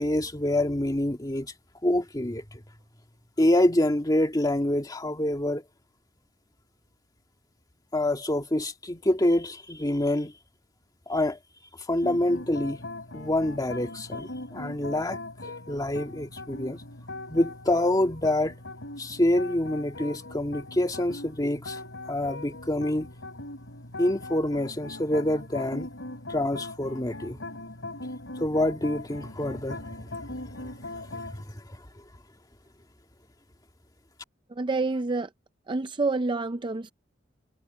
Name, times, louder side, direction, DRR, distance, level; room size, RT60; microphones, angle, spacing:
voice 1, 0.0-1.5 1.8-2.4 3.4-5.6 7.9-10.3 11.1-11.4 11.9-12.8 13.1-15.2 15.4-16.8 17.3-18.6 19.0-21.8 22.1-23.1 24.0-25.9 26.3-27.4 28.4-30.1 30.4-30.7 31.1-31.8, left 1 dB, 20° left, 1.8 m, -26 dB
sound 1, 12.0-31.4, left 2 dB, 85° left, 3.9 m, -40 dB
voice 2, 34.5-35.3 35.7-36.9, right 3 dB, 25° right, 0.5 m, -28 dB
head